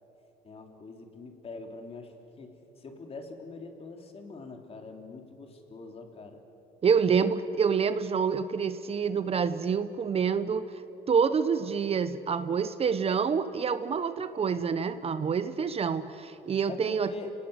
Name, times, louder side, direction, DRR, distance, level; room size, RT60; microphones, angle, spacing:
voice 1, 0.4-6.4 16.7-17.3, left 3 dB, 35° left, 4 dB, 3.2 m, -43 dB
voice 2, 6.8-10.8 11.1-17.1, right 6 dB, 35° right, 12 dB, 0.9 m, -27 dB
29.5 x 19.0 x 8.0 m, 2.9 s
cardioid pair, 110°, 17 cm